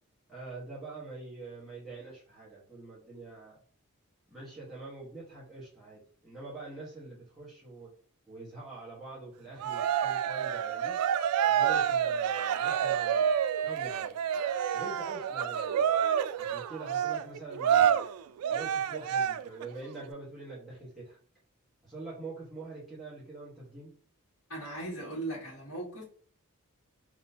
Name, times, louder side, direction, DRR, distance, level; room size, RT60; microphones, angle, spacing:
voice 1, 0.3-3.6 4.3-7.9 8.3-11.0 11.5-13.3 13.6-14.1 14.7-15.9 16.4-18.0 18.5-21.2 21.8-23.9, right 3 dB, ahead, 1.3 m, -45 dB
Cheering, 9.6-19.7, right 9 dB, 80° right, 0.3 m, -28 dB
voice 2, 24.5-26.0, right 1 dB, 70° left, 1.9 m, -38 dB
3.8 x 2.9 x 2.8 m
head